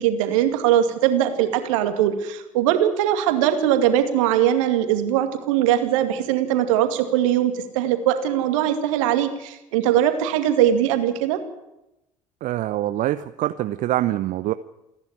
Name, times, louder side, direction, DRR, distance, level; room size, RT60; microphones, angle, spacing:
voice 1, 0.0-11.4, right 11 dB, 65° right, 7 dB, 2.3 m, -21 dB
voice 2, 12.4-14.5, right 14 dB, 50° right, 12 dB, 0.7 m, -24 dB
28.0 x 10.5 x 9.9 m, 0.90 s
figure-of-eight pair, 55°, 18 cm